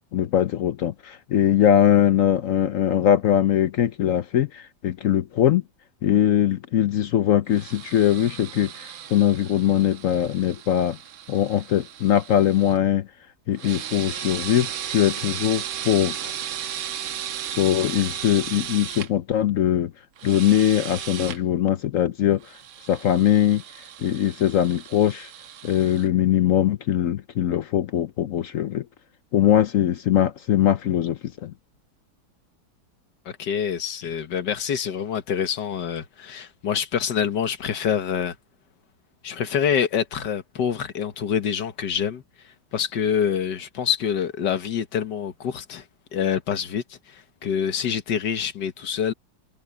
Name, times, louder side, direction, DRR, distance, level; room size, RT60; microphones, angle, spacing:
voice 1, 0.1-5.6 6.0-11.0 11.3-13.1 13.5-16.3 17.5-19.9 20.2-22.4 22.9-23.6 24.0-25.3 25.6-28.8 29.3-31.5, left 11 dB, 75° left, 0.7 m, -21 dB
sound 1, 7.5-12.8 13.6-19.1 20.2-21.4 22.4-26.1, right 10 dB, 80° right, 1.9 m, -35 dB
voice 2, 33.3-38.4 39.2-42.2 42.7-45.8 46.1-49.1, left 8 dB, 60° left, 1.8 m, -26 dB
omnidirectional pair, 2.2 m